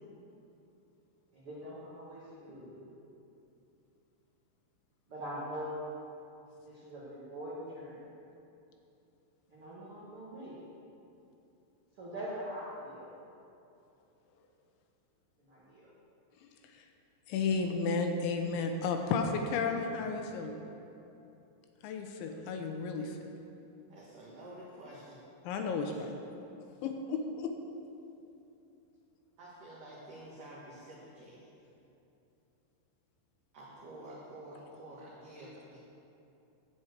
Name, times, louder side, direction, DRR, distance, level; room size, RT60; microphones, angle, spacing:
voice 1, 1.3-2.9 5.1-5.8 6.6-8.0 9.5-10.5 12.0-13.1 15.5-15.8, equal, 90° right, -9 dB, 1.2 m, -42 dB
voice 2, 17.3-20.6 21.8-23.3 25.5-26.1 26.8-27.5, left 4 dB, 80° left, 4 dB, 2.8 m, -33 dB
voice 3, 23.9-25.2 25.9-26.0 29.4-31.7 33.5-35.8, right 1 dB, 70° right, -6 dB, 2.1 m, -49 dB
13.0 x 4.8 x 8.0 m, 2.8 s
omnidirectional pair, 5.9 m